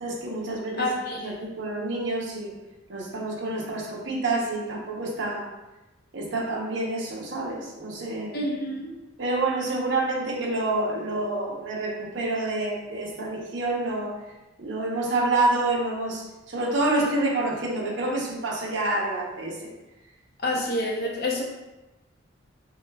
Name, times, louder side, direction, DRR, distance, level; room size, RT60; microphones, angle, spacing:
voice 1, 0.0-0.9 1.2-2.5 2.9-5.5 6.1-8.3 9.2-14.1 14.6-19.7, right 2 dB, 65° right, -3 dB, 0.9 m, -28 dB
voice 2, 0.8-1.4 8.3-8.9 20.4-21.4, left 1 dB, 50° left, -2 dB, 0.8 m, -28 dB
6.0 x 2.3 x 2.3 m, 1.0 s
head